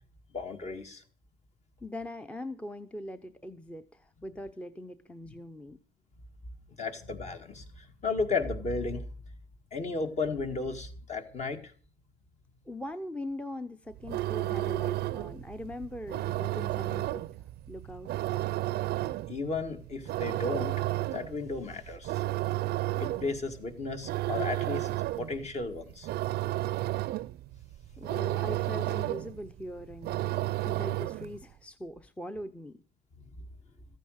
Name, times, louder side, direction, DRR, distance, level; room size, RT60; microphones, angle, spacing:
voice 1, 0.3-1.0 6.8-9.0 9.7-11.7 19.3-22.2 23.0-24.9 25.2-26.1 33.2-33.3, left 4 dB, 40° left, 6 dB, 1.9 m, -34 dB
voice 2, 1.8-5.8 12.7-18.1 28.0-32.8, left 1 dB, 5° left, 10 dB, 0.7 m, -41 dB
sound 1, 13.9-31.4, right 17 dB, 70° right, 0.6 m, -33 dB
14.0 x 9.2 x 6.4 m, 0.41 s
cardioid pair, 110°, 17 cm